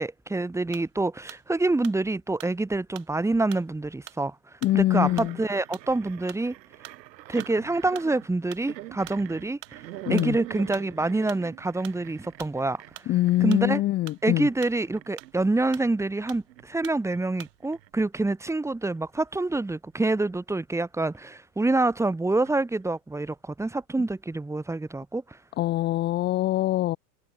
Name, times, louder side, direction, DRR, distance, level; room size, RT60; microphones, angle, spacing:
voice 1, 0.0-4.3 4.7-6.5 7.3-9.6 10.1-12.8 13.4-13.8 14.2-25.4, right 2 dB, 5° right, 1.4 m, -26 dB
sound 1, 0.7-1.0 1.3-1.5 1.8-2.6 2.9-3.2 3.5-3.7 4.1-4.2 4.6-4.8 5.2-5.4 5.7-5.9 6.3-6.5 6.8-7.1 7.4-7.6 7.9-8.1 8.5-8.7 9.1-9.2 9.6-9.8 10.2-10.4 10.7-10.9 11.3-11.5 11.8-12.0 12.4-12.6 13.0-13.1 13.5-14.2 14.6-14.8 15.2-15.4 15.7-16.0 16.3-16.5 16.8-17.0 17.4-17.6 17.8-18.0, right 19 dB, 75° right, 6.1 m, -45 dB
voice 2, 4.6-5.4 10.1-10.4 13.1-14.5 25.6-27.0, left 15 dB, 20° left, 0.5 m, -24 dB
sound 2, 4.9-13.9 14.2-19.7 20.0-20.6 21.2-21.3 22.5-22.9, right 15 dB, 90° right, 2.3 m, -44 dB
supercardioid pair, 135°, 49 cm